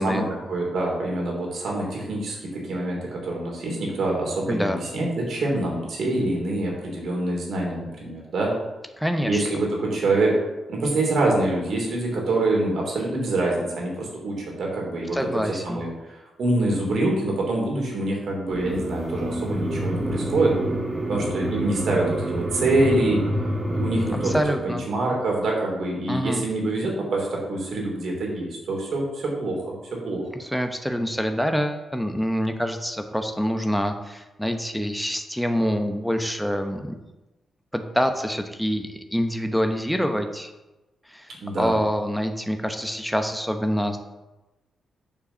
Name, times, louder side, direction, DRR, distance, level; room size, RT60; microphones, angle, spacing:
voice 1, 0.0-8.5 9.2-10.3 10.7-15.2 15.5-20.5 21.1-23.2 23.7-29.7 30.0-30.3 41.4-41.7, right 2 dB, 70° right, -1 dB, 3.1 m, -25 dB
voice 2, 4.5-4.8 9.0-9.4 15.1-15.8 24.2-24.8 26.1-26.5 30.3-37.0 37.7-40.5 41.1-41.3 41.6-44.0, equal, ahead, 5 dB, 1.0 m, -26 dB
sound 1, 18.5-24.4, right 1 dB, 25° right, 2.1 m, -27 dB
7.1 x 4.6 x 7.0 m, 1.0 s
supercardioid pair, 60°, 0 cm